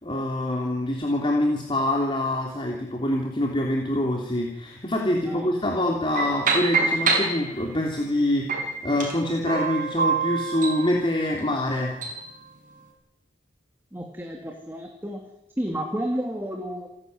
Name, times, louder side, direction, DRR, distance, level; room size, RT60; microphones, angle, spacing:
voice 1, 0.0-11.9, left 1 dB, 25° left, 0 dB, 3.2 m, -25 dB
sound 1, 6.2-7.9 8.5-12.3, right 4 dB, 45° right, 5.4 m, -27 dB
voice 2, 13.9-15.2 15.6-16.9, equal, 10° right, 2 dB, 2.6 m, -31 dB
29.0 x 12.0 x 9.6 m, 0.89 s
head